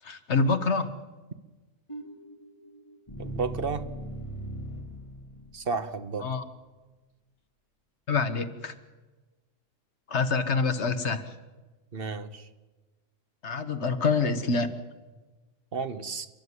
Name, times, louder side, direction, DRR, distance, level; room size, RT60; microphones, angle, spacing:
voice 1, 0.0-0.9 6.2-6.4 8.1-8.7 10.1-11.3 13.4-14.7, left 4 dB, 60° left, 8 dB, 1.6 m, -26 dB
sound 1, 1.9-6.0, right 1 dB, 25° left, 3.3 m, -40 dB
voice 2, 3.2-3.9 5.5-6.3 11.9-12.5 15.7-16.3, right 5 dB, 50° right, 9 dB, 1.3 m, -32 dB
29.5 x 11.5 x 9.6 m, 1.2 s
omnidirectional pair, 1.3 m